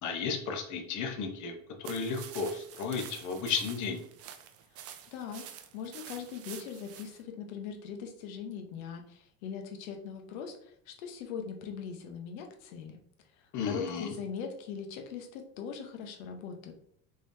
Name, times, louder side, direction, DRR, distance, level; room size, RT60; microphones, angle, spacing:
voice 1, 0.0-4.0 13.5-14.1, left 5 dB, 45° left, 3 dB, 0.8 m, -34 dB
Woodland Walk Through Leaves, 1.8-7.2, right 10 dB, 40° right, 0.4 m, -48 dB
voice 2, 5.1-5.4 5.7-13.0 13.6-16.7, left 6 dB, 85° left, 5 dB, 0.8 m, -40 dB
3.8 x 3.2 x 2.6 m, 0.68 s
supercardioid pair, 115°, 41 cm